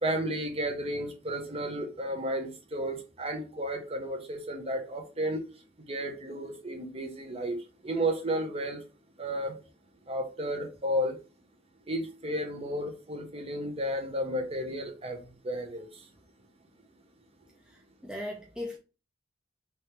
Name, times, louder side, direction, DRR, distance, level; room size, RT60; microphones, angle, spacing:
voice 1, 0.0-5.4 5.9-7.6 7.8-8.8 9.2-9.6 10.1-11.2 11.9-16.1, equal, 30° right, 0.7 m, -33 dB
voice 2, 17.7-18.8, left 1 dB, 5° right, 0.3 m, -38 dB
3.1 x 2.8 x 3.2 m
head